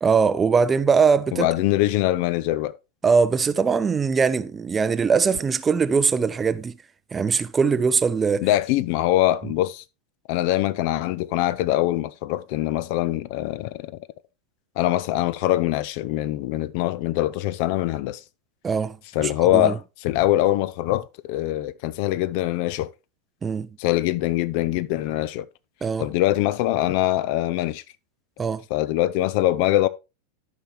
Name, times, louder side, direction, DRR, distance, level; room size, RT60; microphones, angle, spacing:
voice 1, 0.0-1.5 3.0-6.7 7.1-8.5 18.6-19.7 23.4-23.7 25.8-26.1 28.4-28.6, right 5 dB, 15° right, 0.5 m, -21 dB
voice 2, 1.3-2.7 8.4-9.8 10.3-13.9 14.8-18.2 19.1-22.9 23.8-25.5 26.0-27.8 28.7-29.9, left 15 dB, 45° left, 0.5 m, -23 dB
12.5 x 5.6 x 3.1 m
figure-of-eight pair, 90°, 0 cm